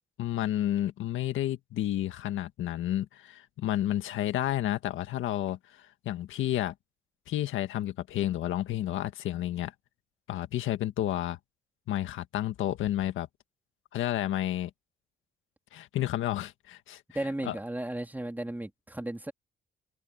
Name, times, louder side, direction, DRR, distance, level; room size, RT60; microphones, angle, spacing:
voice 1, 0.2-6.7 7.3-9.7 10.3-11.4 11.9-13.3 13.9-14.7 15.7-17.0 17.4-17.6, left 13 dB, 80° left, 1.7 m, -31 dB
voice 2, 17.1-19.3, right 1 dB, 10° right, 3.1 m, -35 dB
cardioid pair, 90°, 20 cm